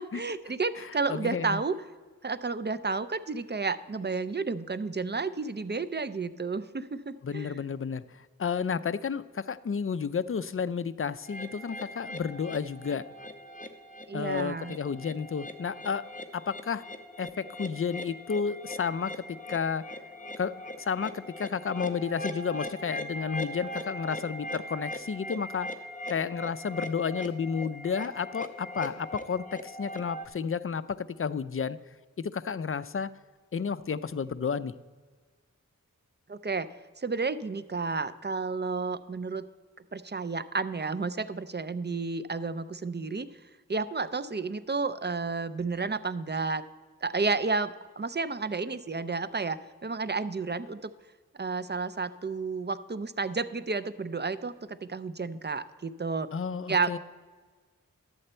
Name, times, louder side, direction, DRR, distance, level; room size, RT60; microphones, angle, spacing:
voice 1, 0.0-1.8 2.2-7.6 14.1-14.8 36.3-39.5 39.9-43.3 43.7-46.6 47.0-50.9 51.4-56.3 56.7-57.0, right 4 dB, 35° right, 14 dB, 0.5 m, -31 dB
voice 2, 0.8-1.6 7.2-13.0 14.1-16.0 16.3-16.8 17.2-19.2 19.5-19.8 20.4-25.7 26.1-31.8 32.2-33.1 33.5-34.7 56.3-57.0, left 6 dB, 40° left, 14 dB, 0.4 m, -31 dB
sound 1, 11.2-30.3, equal, 25° left, 0.8 m, -40 dB
11.5 x 7.9 x 4.3 m, 1.5 s
wide cardioid pair, 45°, 33 cm